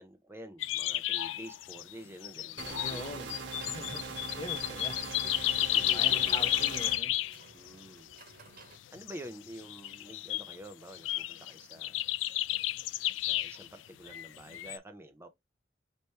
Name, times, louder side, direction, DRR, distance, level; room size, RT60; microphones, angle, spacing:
voice 1, 0.0-3.8 4.7-5.3 5.6-6.7 7.5-8.1 8.9-12.1 13.3-15.3, right 1 dB, 15° right, 0.5 m, -49 dB
sound 1, 0.6-1.9 2.2-7.8 8.1-8.3 8.9-10.6 10.9-13.7 14.0-14.8, left 15 dB, 85° left, 0.3 m, -32 dB
sound 2, 2.6-7.0, right 4 dB, 70° right, 0.9 m, -42 dB
voice 2, 2.8-3.3 3.6-5.0 5.9-7.1, left 1 dB, 25° left, 0.7 m, -42 dB
sound 3, 2.8-8.8, right 4 dB, 50° right, 1.2 m, -56 dB
4.1 x 3.3 x 3.2 m
head